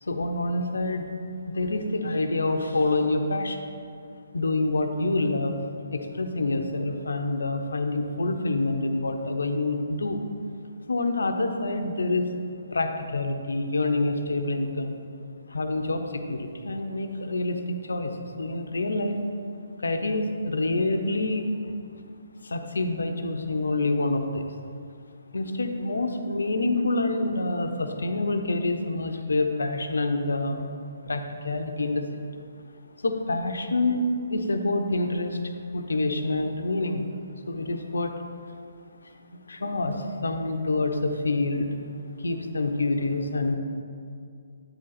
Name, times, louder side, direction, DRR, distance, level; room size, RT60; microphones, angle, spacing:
voice 1, 0.0-1.1 1.5-3.6 4.3-5.6 5.9-10.2 10.9-12.2 12.7-15.0 15.5-18.1 18.4-19.2 19.8-21.5 22.4-24.4 25.3-30.7 31.0-32.2 33.0-35.4 35.7-37.1 37.5-38.1 39.5-41.7 42.2-43.6, left 2 dB, 80° left, 6 dB, 0.6 m, -27 dB
8.1 x 3.9 x 4.1 m, 2.3 s
hypercardioid pair, 145°, 0 cm